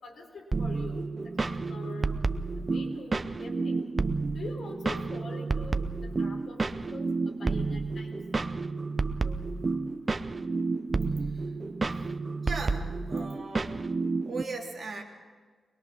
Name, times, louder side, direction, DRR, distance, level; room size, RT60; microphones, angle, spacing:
voice 1, 0.0-2.1 2.5-3.9 4.3-8.2 9.2-9.5, left 3 dB, 55° left, 2 dB, 4.1 m, -44 dB
sound 1, 0.5-14.4, right 3 dB, 25° right, 0.7 m, -30 dB
voice 2, 12.4-13.7 14.2-15.0, right 3 dB, 45° right, 0 dB, 3.3 m, -38 dB
23.0 x 21.0 x 6.2 m, 1.5 s
wide cardioid pair, 160°, 0 cm